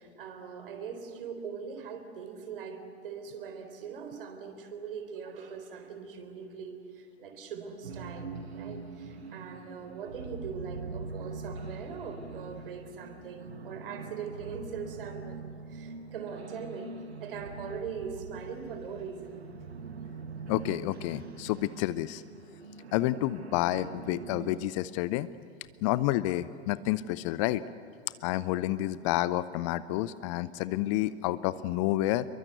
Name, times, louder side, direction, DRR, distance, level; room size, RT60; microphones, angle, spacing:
voice 1, 0.0-19.4, right 6 dB, 55° right, 7 dB, 4.0 m, -41 dB
sound 1, 7.8-24.6, right 4 dB, 70° right, 1.6 m, -43 dB
voice 2, 20.5-22.2 22.9-25.3 25.8-27.6 28.2-32.3, left 15 dB, 30° left, 17 dB, 0.6 m, -29 dB
28.0 x 23.0 x 8.1 m, 2.5 s
figure-of-eight pair, 100°, 33 cm